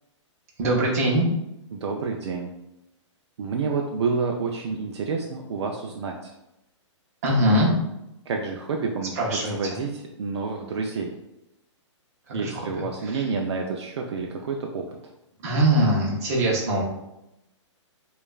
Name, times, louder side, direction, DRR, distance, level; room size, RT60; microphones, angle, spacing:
voice 1, 0.6-1.3 7.2-7.7 9.1-9.5 12.3-13.3 15.4-16.8, right 1 dB, 30° right, -2 dB, 0.8 m, -22 dB
voice 2, 1.7-2.5 3.4-6.3 8.3-9.9 10.2-11.1 12.3-15.1, right 4 dB, 60° right, 1 dB, 0.4 m, -29 dB
4.9 x 2.4 x 2.3 m, 0.90 s
hypercardioid pair, 175°, 16 cm